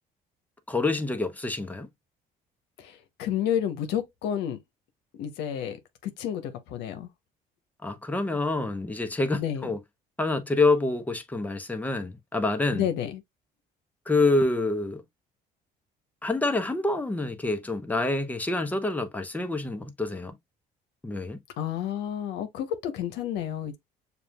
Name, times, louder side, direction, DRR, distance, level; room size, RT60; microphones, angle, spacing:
voice 1, 0.7-1.9 7.8-9.8 10.2-12.9 14.1-15.0 16.2-20.3 21.0-21.4, left 2 dB, 10° left, 0.8 m, -27 dB
voice 2, 2.8-4.6 5.2-5.8 6.0-7.1 9.3-9.7 12.7-13.2 21.6-23.8, left 9 dB, 85° left, 0.8 m, -30 dB
6.9 x 2.4 x 2.2 m
cardioid pair, 110°, 17 cm